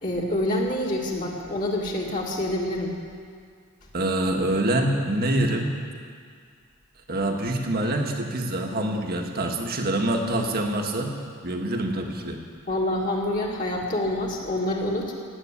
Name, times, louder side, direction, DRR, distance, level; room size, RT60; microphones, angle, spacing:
voice 1, 0.0-3.0 12.7-15.1, left 1 dB, 40° left, -3 dB, 2.1 m, -27 dB
voice 2, 3.9-5.7 7.1-11.1 11.4-12.4, right 1 dB, 45° right, 2 dB, 1.7 m, -25 dB
16.0 x 9.0 x 9.9 m, 2.1 s
head